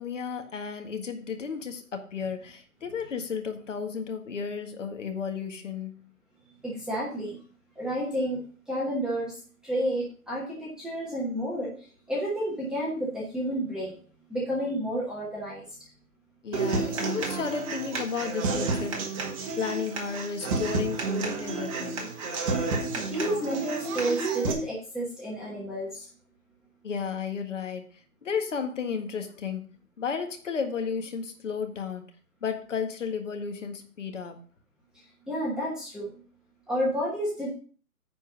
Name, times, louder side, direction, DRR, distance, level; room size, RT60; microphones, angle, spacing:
voice 1, 0.0-6.1 16.4-19.1 19.6-22.1 26.8-32.1 32.4-34.4, left 6 dB, 55° left, 6 dB, 1.8 m, -33 dB
voice 2, 6.6-7.4 7.8-8.4 8.7-9.3 9.6-11.7 12.1-13.9 14.3-15.9 23.0-26.1 35.3-36.1 36.7-37.5, equal, ahead, -6 dB, 1.1 m, -30 dB
Human voice / Acoustic guitar, 16.5-24.5, right 4 dB, 20° right, 1.3 m, -30 dB
9.8 x 4.5 x 6.2 m, 0.40 s
hypercardioid pair, 150°, 45 cm